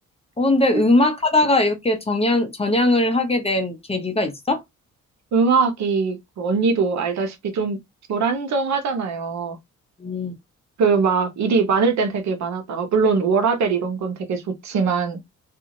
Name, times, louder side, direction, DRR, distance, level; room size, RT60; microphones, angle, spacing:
voice 1, 0.4-4.6 10.0-10.3, left 2 dB, 20° left, 0.8 m, -20 dB
voice 2, 5.3-7.8 8.1-9.6 10.8-15.2, right 5 dB, 65° right, 0.9 m, -21 dB
2.6 x 2.4 x 2.9 m
cardioid pair, 90°, 30 cm